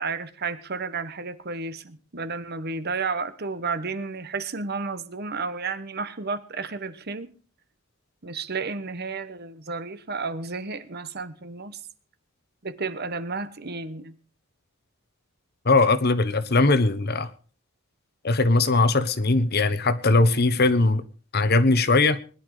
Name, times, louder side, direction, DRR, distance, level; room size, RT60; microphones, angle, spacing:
voice 1, 0.0-7.3 8.2-11.8 12.6-14.1, right 4 dB, 50° right, 1.2 m, -32 dB
voice 2, 15.6-17.3 18.2-21.0 21.3-22.2, left 3 dB, 50° left, 1.1 m, -20 dB
20.0 x 11.0 x 4.9 m
head